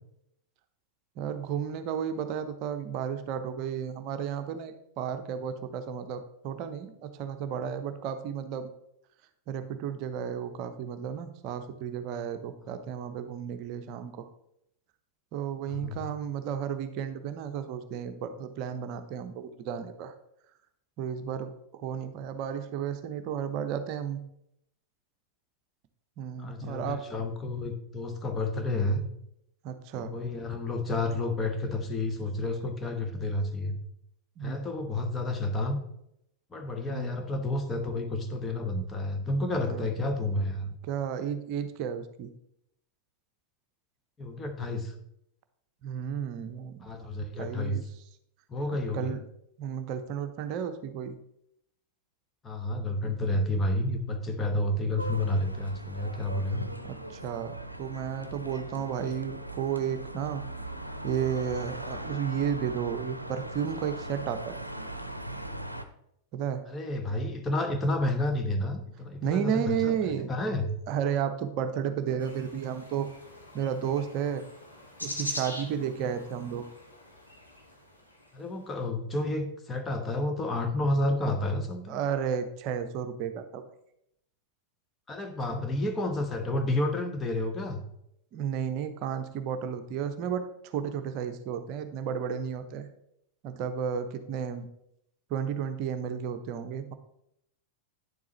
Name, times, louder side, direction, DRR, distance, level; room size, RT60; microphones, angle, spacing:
voice 1, 1.2-8.7 9.5-14.3 15.3-20.1 21.0-24.2 26.2-27.0 29.6-30.1 34.4-34.6 36.9-37.2 39.6-39.9 40.8-42.3 45.8-46.9 47.4-47.8 48.7-49.2 49.6-51.1 56.8-60.4 61.0-64.6 66.3-66.6 69.2-70.3 70.9-73.1 73.5-74.4 75.0-76.7 81.9-83.6 85.5-85.7 88.3-92.9 93.4-94.7 95.3-96.9, right 8 dB, 40° right, 9 dB, 0.8 m, -33 dB
voice 2, 15.7-16.0 26.4-29.0 29.9-33.8 34.4-35.8 36.5-40.7 44.2-44.9 46.8-47.8 48.5-49.2 52.4-56.6 66.7-70.0 70.3-70.7 78.3-82.0 85.1-87.8, left 1 dB, 20° left, 5 dB, 1.2 m, -30 dB
sound 1, 55.0-65.8, right 1 dB, 90° right, 0.6 m, -40 dB
sound 2, 72.2-78.4, left 1 dB, 85° left, 1.5 m, -42 dB
9.6 x 7.3 x 3.0 m, 0.76 s
figure-of-eight pair, 90°, 0 cm